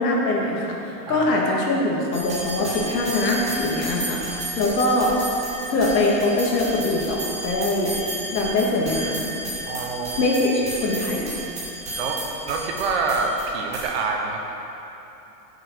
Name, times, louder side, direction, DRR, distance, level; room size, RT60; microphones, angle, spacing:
voice 1, 0.0-4.2 4.6-5.1 5.7-7.9 8.3-9.3 10.2-11.3, left 2 dB, 85° left, -2 dB, 2.2 m, -22 dB
sound 1, 2.1-13.8, right 1 dB, 15° right, 2.0 m, -32 dB
voice 2, 9.7-10.2 12.0-12.2 12.4-14.4, right 4 dB, 40° right, 1 dB, 1.0 m, -26 dB
7.6 x 7.1 x 6.1 m, 3.0 s
supercardioid pair, 175°, 49 cm